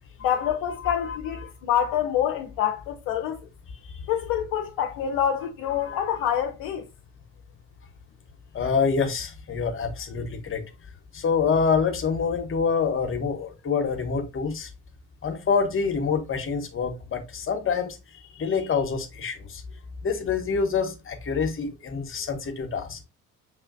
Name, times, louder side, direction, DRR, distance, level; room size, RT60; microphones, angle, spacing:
voice 1, 0.2-3.4 4.1-6.8, left 9 dB, 55° left, 0.6 m, -26 dB
voice 2, 0.8-1.2 3.8-4.0 5.8-6.2 8.5-10.7 11.1-14.7 15.2-19.6 20.0-23.0, left 5 dB, 30° left, 1.1 m, -26 dB
6.3 x 3.0 x 2.4 m
figure-of-eight pair, 50°, 44 cm